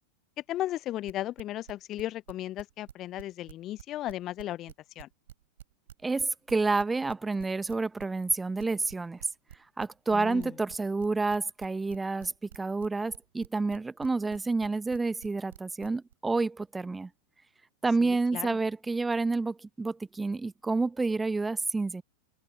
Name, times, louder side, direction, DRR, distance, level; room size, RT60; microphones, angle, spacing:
voice 1, 0.5-5.1 10.1-10.5 18.0-18.6, left 14 dB, 35° left, 0.9 m, -36 dB
sound 1, 0.9-3.2 3.5-16.1, right 11 dB, 60° right, 4.9 m, -49 dB
voice 2, 6.0-9.2 9.8-17.1 17.8-22.0, right 3 dB, 10° right, 0.9 m, -29 dB
figure-of-eight pair, 90°, 0 cm